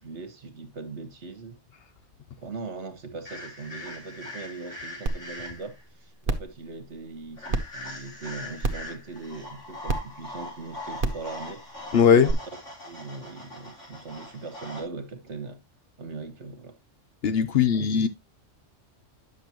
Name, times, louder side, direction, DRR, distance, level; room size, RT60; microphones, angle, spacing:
voice 1, 0.0-1.6 2.4-11.6 12.2-12.3 12.8-15.6 16.0-16.8, right 4 dB, 65° right, 1.7 m, -40 dB
sound 1, 3.3-5.8 7.4-14.8, left 1 dB, 90° left, 4.9 m, -41 dB
sound 2, 5.1-5.2 5.6-5.7 6.2-6.5 7.5-7.6 8.6-8.9 9.9-10.0 11.0-11.2 12.3-12.4, right 3 dB, 45° right, 1.2 m, -26 dB
voice 2, 11.9-12.3 17.2-18.1, left 7 dB, 60° left, 0.9 m, -19 dB
10.0 x 6.8 x 2.9 m
omnidirectional pair, 1.2 m